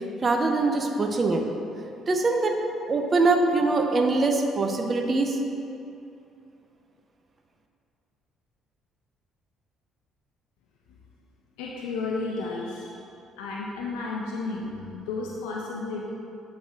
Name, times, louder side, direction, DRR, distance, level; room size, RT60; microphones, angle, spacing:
voice 1, 0.2-1.4 2.1-2.6 2.9-5.4, right 3 dB, 40° right, 3 dB, 0.6 m, -23 dB
voice 2, 11.6-13.1 13.4-16.1, left 3 dB, 80° left, -2 dB, 0.5 m, -33 dB
7.2 x 7.2 x 2.4 m, 2.6 s
hypercardioid pair, 55°, 0 cm